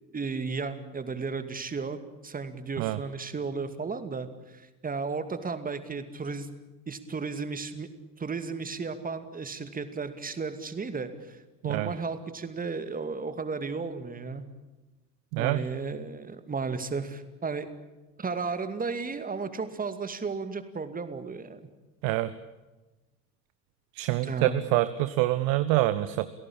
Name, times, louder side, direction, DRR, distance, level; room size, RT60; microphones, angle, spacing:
voice 1, 0.1-6.5 6.9-7.9 8.2-14.4 15.4-17.7 18.2-21.6 24.2-24.6, right 4 dB, 15° right, 10 dB, 2.4 m, -34 dB
voice 2, 15.3-15.6 22.0-22.3 23.9-26.3, right 16 dB, 45° right, 14 dB, 1.1 m, -26 dB
29.0 x 17.5 x 8.8 m, 1.1 s
figure-of-eight pair, 75°, 48 cm